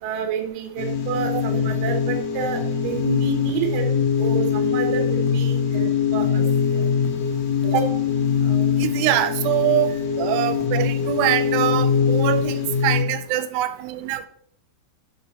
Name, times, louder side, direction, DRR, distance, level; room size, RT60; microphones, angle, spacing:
voice 1, 0.0-3.9 4.2-6.8 7.6-7.9 8.4-8.8 9.9-10.0 13.8-13.9, right 8 dB, 70° right, 4 dB, 2.4 m, -29 dB
sound 1, 0.8-13.0, left 7 dB, 70° left, 2.4 m, -22 dB
voice 2, 8.8-9.9 10.2-14.3, right 13 dB, 90° right, 10 dB, 2.7 m, -23 dB
6.0 x 5.7 x 4.0 m, 0.67 s
omnidirectional pair, 4.7 m